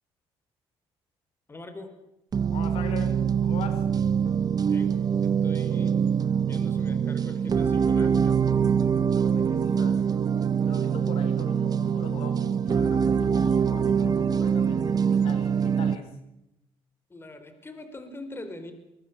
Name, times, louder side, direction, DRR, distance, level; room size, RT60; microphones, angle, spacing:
voice 1, 1.5-1.9 4.5-4.9 5.2-5.9 6.4-8.5 17.1-18.7, left 2 dB, 20° left, 9 dB, 4.2 m, -42 dB
sound 1, 2.3-16.0, right 7 dB, 40° right, 1.5 m, -24 dB
voice 2, 2.5-3.8 9.1-10.1 10.6-16.1, left 6 dB, 75° left, 9 dB, 3.7 m, -41 dB
23.0 x 21.5 x 7.3 m, 0.86 s
cardioid pair, 100°, 10 cm